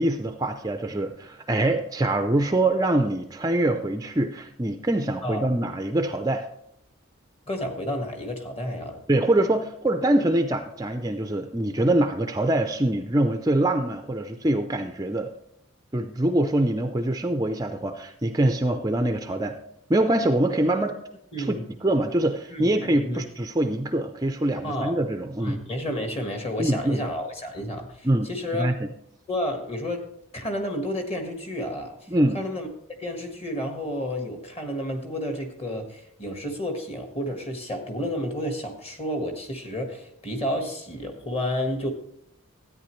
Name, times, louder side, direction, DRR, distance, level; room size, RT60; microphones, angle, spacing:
voice 1, 0.0-6.4 9.1-15.3 15.9-19.6 19.9-21.0 21.4-21.6 21.8-25.6 26.6-27.0 28.0-28.9 32.1-32.4, right 1 dB, 15° right, 7 dB, 0.4 m, -24 dB
voice 2, 7.5-9.0 21.3-21.7 22.5-22.7 23.0-23.2 24.6-25.0 25.4-28.7 29.3-30.0 30.3-32.0 32.3-32.7 33.0-41.9, equal, 30° left, 4 dB, 1.5 m, -31 dB
13.0 x 9.3 x 3.1 m, 0.76 s
head